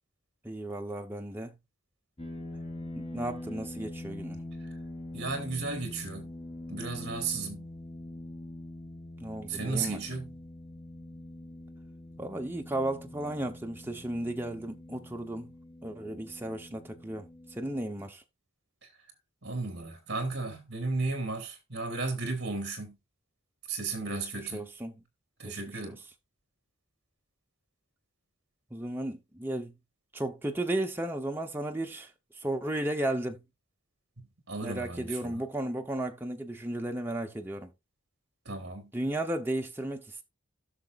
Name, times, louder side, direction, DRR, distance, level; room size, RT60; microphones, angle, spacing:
voice 1, 0.4-1.5 3.0-4.4 9.2-10.0 12.2-15.5 15.8-18.2 24.0-24.2 24.5-25.0 25.4-26.0 28.7-29.7 30.1-32.1 32.4-33.4 34.6-37.7 38.9-40.2, right 1 dB, 10° right, 0.8 m, -34 dB
sound 1, 2.2-17.8, left 1 dB, 25° left, 2.1 m, -44 dB
voice 2, 5.1-6.3 6.7-7.7 9.5-10.4 18.8-18.9 19.4-23.0 23.7-24.7 25.4-26.0 34.2-35.4 38.4-38.9, right 3 dB, 55° right, 2.6 m, -34 dB
16.0 x 6.2 x 2.5 m
head